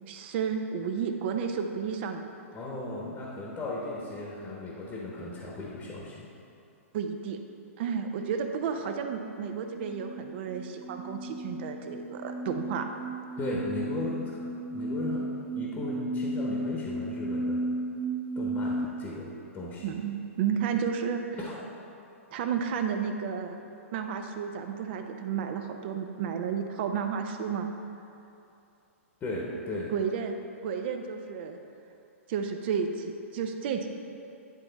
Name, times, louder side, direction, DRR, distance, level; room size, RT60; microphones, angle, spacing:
voice 1, 0.1-2.2 6.9-7.4 7.8-12.9 19.8-21.4 22.3-23.6 23.9-27.7 29.9-30.4 30.6-31.6 32.3-33.9, right 7 dB, 50° right, 6 dB, 0.6 m, -32 dB
voice 2, 2.5-6.3 13.4-14.4 14.7-15.3 15.5-17.6 18.4-19.3 19.5-19.9 21.4-21.6 29.2-29.9, left 2 dB, 20° left, -4 dB, 1.0 m, -36 dB
sound 1, 9.7-18.8, right 1 dB, 10° right, 0.3 m, -34 dB
9.9 x 3.5 x 4.0 m, 2.7 s
hypercardioid pair, 125°, 8 cm